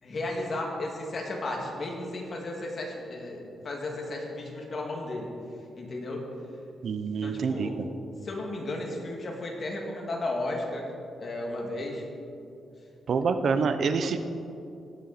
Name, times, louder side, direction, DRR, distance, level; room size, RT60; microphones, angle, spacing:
voice 1, 0.0-5.3 5.8-6.2 7.2-7.8 8.2-10.9 11.2-12.1, left 2 dB, 40° left, 0 dB, 2.0 m, -34 dB
voice 2, 6.8-7.7 13.1-14.2, right 5 dB, 55° right, 9 dB, 0.7 m, -26 dB
17.0 x 7.1 x 4.2 m, 2.6 s
cardioid pair, 120°, 0 cm